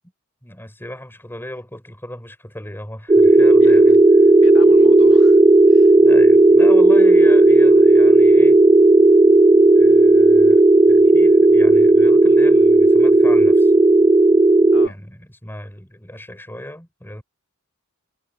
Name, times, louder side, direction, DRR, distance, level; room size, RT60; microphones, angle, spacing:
voice 1, 0.4-4.0 5.9-8.6 9.8-13.7 14.8-17.2, left 1 dB, 10° left, 7.7 m, -36 dB
sound 1, 3.1-14.9, right 2 dB, 15° right, 0.4 m, -12 dB
voice 2, 3.6-4.0 4.4-5.4 5.7-6.0 6.5-6.7 14.7-15.0, left 2 dB, 65° left, 2.7 m, -37 dB
head